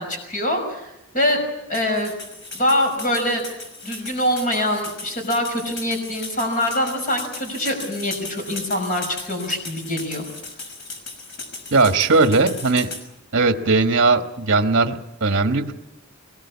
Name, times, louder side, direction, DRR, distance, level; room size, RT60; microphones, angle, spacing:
voice 1, 0.0-1.4 1.7-2.1 2.5-3.4 3.8-10.2, left 1 dB, 40° left, 4 dB, 5.6 m, -24 dB
sound 1, 1.7-13.0, left 3 dB, 60° left, 5.9 m, -37 dB
voice 2, 11.7-12.9 13.3-15.7, right 3 dB, 55° right, 6 dB, 1.4 m, -18 dB
23.0 x 20.5 x 8.4 m, 0.88 s
head